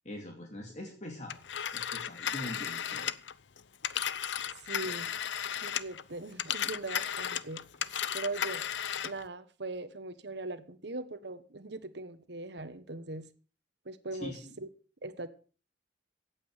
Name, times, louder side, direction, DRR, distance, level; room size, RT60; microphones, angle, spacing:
voice 1, 0.0-1.4 1.7-3.1 4.8-4.9 14.2-14.4, left 1 dB, 40° left, 1 dB, 2.8 m, -42 dB
Telephone, 1.3-6.0 6.3-9.2, left 9 dB, 80° left, 0.7 m, -35 dB
voice 2, 4.6-5.2 5.6-7.7 8.1-8.6 9.0-13.3 13.8-14.7 15.0-15.3, right 2 dB, 65° right, 11 dB, 1.4 m, -40 dB
16.0 x 8.7 x 6.7 m, 0.39 s
head